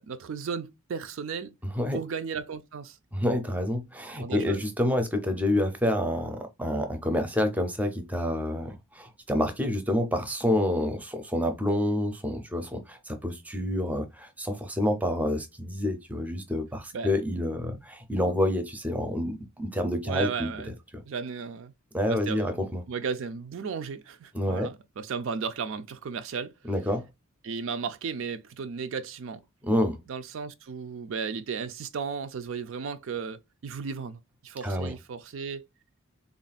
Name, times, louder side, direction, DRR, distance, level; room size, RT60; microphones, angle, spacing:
voice 1, 0.0-1.5 1.9-3.0 4.1-4.7 16.9-17.1 20.0-20.8 21.1-21.7 22.1-26.5 27.4-29.4 30.1-35.6, right 6 dB, 65° right, 0.4 m, -35 dB
voice 2, 3.1-20.5 21.9-22.8 24.3-24.7 26.7-27.1 29.6-30.0 34.6-34.9, left 1 dB, 5° right, 0.5 m, -28 dB
3.6 x 2.4 x 4.0 m
head